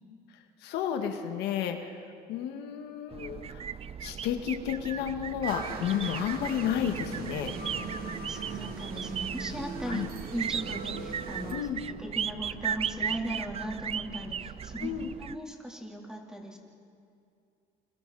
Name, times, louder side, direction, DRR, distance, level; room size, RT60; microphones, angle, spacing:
voice 1, 0.6-2.0 2.3-3.6 4.0-7.6 9.9-10.1 11.5-11.8 14.8-15.1, left 9 dB, 85° left, 5 dB, 1.8 m, -32 dB
sound 1, 3.1-15.4, right 8 dB, 35° right, 0.5 m, -37 dB
sound 2, 5.4-11.5, right 4 dB, 60° right, 2.6 m, -39 dB
voice 2, 8.3-10.0 10.3-11.7 12.0-14.9 15.2-16.6, equal, 5° right, -1 dB, 3.7 m, -38 dB
28.5 x 27.0 x 4.2 m, 2.4 s
cardioid pair, 110°, 17 cm